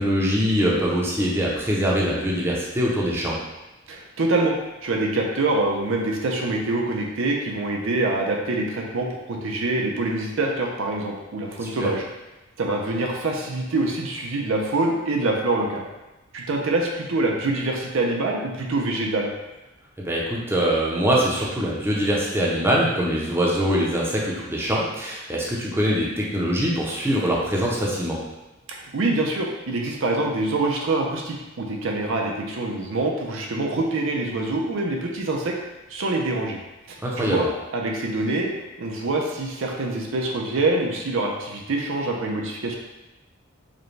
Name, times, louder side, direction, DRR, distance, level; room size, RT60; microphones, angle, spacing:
voice 1, 0.0-3.4 11.6-11.9 20.0-28.2 37.0-37.4, equal, 10° right, -4 dB, 0.6 m, -23 dB
voice 2, 3.9-4.6 4.8-12.0 12.6-15.8 16.3-19.3 28.7-35.6 35.9-36.6 36.9-38.5 38.8-42.8, right 2 dB, 70° right, 0 dB, 0.6 m, -25 dB
4.9 x 2.2 x 3.2 m, 1.0 s
head